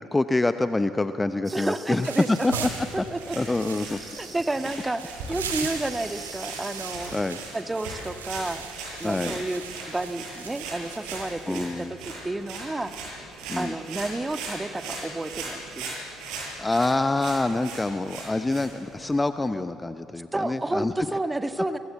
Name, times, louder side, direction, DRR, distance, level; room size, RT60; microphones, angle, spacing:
voice 1, 0.0-2.5 3.0-3.1 3.3-4.0 7.1-7.4 9.0-9.4 11.5-11.9 13.5-13.7 16.6-20.9, left 2 dB, 15° left, 11 dB, 0.9 m, -26 dB
sound 1, 1.4-2.6 3.1-7.5, right 4 dB, 35° right, 6.8 m, -46 dB
voice 2, 1.5-2.6 2.9-3.4 4.2-7.1 7.5-8.7 9.0-9.6 9.9-12.9 13.6-16.0 20.3-21.8, right 2 dB, 15° right, 9 dB, 1.8 m, -31 dB
sound 2, 2.0-11.9, right 6 dB, 75° right, 2.7 m, -39 dB
sound 3, 2.5-19.2, right 3 dB, 60° right, 7.9 m, -39 dB
29.0 x 24.5 x 7.9 m, 2.8 s
figure-of-eight pair, 50°, 0 cm